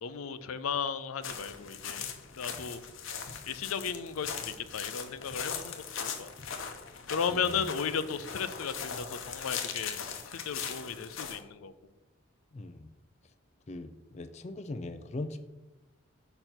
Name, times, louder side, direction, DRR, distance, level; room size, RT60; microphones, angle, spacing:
voice 1, 0.0-2.1 2.4-2.8 3.5-6.3 7.1-10.0 10.3-11.7, left 6 dB, 90° left, 12 dB, 0.5 m, -35 dB
sound 1, 1.2-11.4, left 7 dB, 70° left, 0.9 m, -40 dB
voice 2, 12.5-12.9 13.7-15.4, left 2 dB, 30° left, 9 dB, 0.3 m, -40 dB
6.6 x 4.5 x 5.8 m, 1.0 s
head